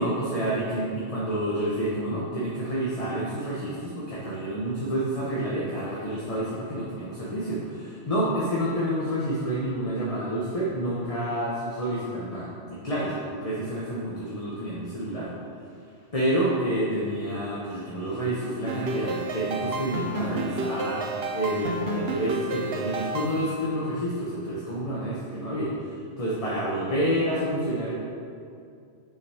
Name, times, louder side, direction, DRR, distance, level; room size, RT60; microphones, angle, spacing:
voice 1, 0.0-15.3 16.1-27.9, right 1 dB, 30° left, -7 dB, 1.2 m, -29 dB
sound 1, 18.7-23.7, right 2 dB, 60° right, 0.9 m, -31 dB
7.2 x 6.3 x 5.0 m, 2.4 s
omnidirectional pair, 1.2 m